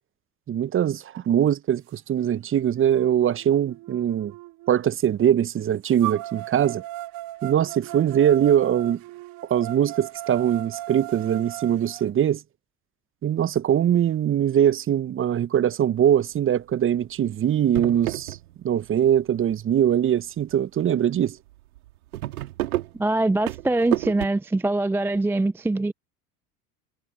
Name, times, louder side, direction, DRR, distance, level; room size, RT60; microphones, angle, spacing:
voice 1, 0.5-4.3 4.7-6.8 7.4-9.0 9.5-12.4 13.2-18.4 18.6-21.4, right 10 dB, 25° right, 1.1 m, -22 dB
sound 1, 2.2-2.3 2.9-4.8 6.0-12.0, right 16 dB, 50° right, 3.0 m, -37 dB
sound 2, 16.4-16.7 17.2-17.3 17.6-18.9 19.2-19.8 20.4-20.5 20.8-20.9 21.2-21.3 21.6-24.3, right 16 dB, 65° right, 2.5 m, -30 dB
voice 2, 22.9-25.9, right 2 dB, 5° right, 0.6 m, -23 dB
figure-of-eight pair, 75°, 46 cm